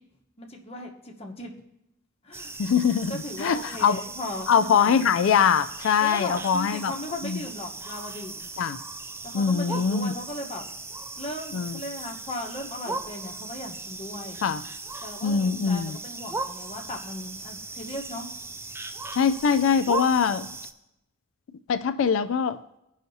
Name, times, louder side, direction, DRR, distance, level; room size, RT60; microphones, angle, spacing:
voice 1, 0.4-1.5 2.2-2.6 3.1-5.1 6.0-8.5 9.2-10.6 11.2-14.4 15.0-18.3, left 1 dB, 30° left, 1 dB, 1.0 m, -37 dB
sound 1, 2.3-20.7, right 3 dB, 10° right, 0.4 m, -38 dB
voice 2, 2.6-4.0 4.5-6.9 7.2-7.4 8.6-8.8 9.3-10.1 11.5-11.8 14.4-14.6 15.2-16.0 19.1-20.5 21.7-22.6, left 7 dB, 65° left, 12 dB, 0.3 m, -23 dB
16.5 x 5.6 x 2.7 m, 0.85 s
head